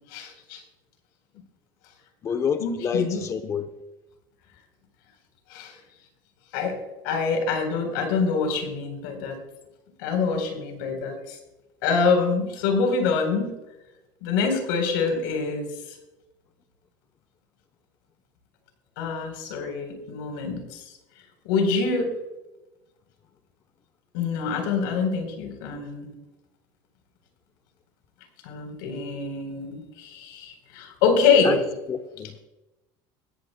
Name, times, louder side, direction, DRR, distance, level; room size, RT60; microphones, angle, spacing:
voice 1, 0.1-0.6 2.6-3.2 5.5-5.8 6.5-6.8 7.0-9.4 10.0-11.4 11.8-13.5 14.2-16.0 19.0-20.8 21.4-22.1 24.1-26.1 28.4-31.6, left 5 dB, 90° left, 3.9 m, -25 dB
voice 2, 2.2-3.7 31.4-31.6 31.9-32.4, left 7 dB, 30° left, 0.8 m, -28 dB
20.0 x 14.5 x 2.2 m
cardioid pair, 135°, 10 cm